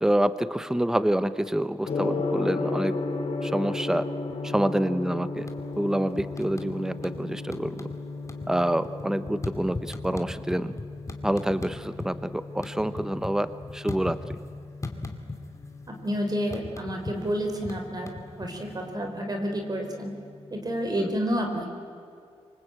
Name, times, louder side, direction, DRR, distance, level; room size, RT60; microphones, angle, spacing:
voice 1, 0.0-2.9 3.4-4.1 4.4-5.5 5.8-7.9 8.5-10.7 11.2-14.2 21.0-21.1, right 1 dB, 5° right, 12 dB, 0.9 m, -27 dB
Gong, 1.8-20.9, left 3 dB, 70° left, 4.2 m, -36 dB
sound 1, 5.4-5.9 6.2-7.2 7.5-8.0 8.2-12.1 12.4-14.5 14.8-15.7 15.9-18.8, left 2 dB, 30° left, 2.4 m, -38 dB
voice 2, 15.9-18.1 18.4-20.1 20.5-21.7, equal, 35° right, 3 dB, 4.0 m, -29 dB
26.0 x 24.5 x 8.8 m, 2.4 s
wide cardioid pair, 110°, 11 cm